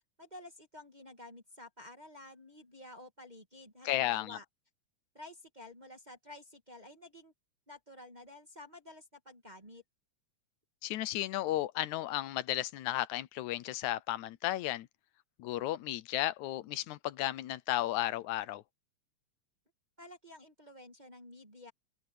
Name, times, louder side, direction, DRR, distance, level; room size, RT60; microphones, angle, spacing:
voice 1, 0.2-4.4 5.1-7.3 7.7-9.8 20.0-21.7, left 1 dB, 20° right, 1.6 m, -51 dB
voice 2, 3.8-4.4 10.8-14.9 15.4-18.6, left 14 dB, 85° left, 2.1 m, -34 dB
open air
omnidirectional pair, 3.3 m